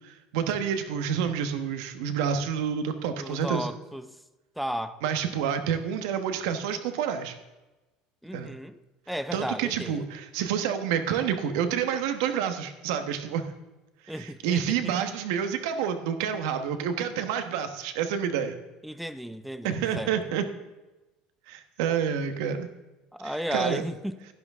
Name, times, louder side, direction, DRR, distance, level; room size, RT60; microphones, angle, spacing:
voice 1, 0.0-3.7 5.0-7.4 8.3-8.5 9.3-13.4 14.1-18.6 19.6-20.4 21.5-22.7 23.2-23.8, right 8 dB, 90° right, 1.2 m, -28 dB
voice 2, 3.2-4.2 4.6-5.0 8.2-8.8 9.1-10.0 14.1-14.9 18.8-20.1 23.1-24.2, equal, ahead, 0.4 m, -34 dB
11.0 x 11.0 x 3.6 m
cardioid pair, 175°, 2 cm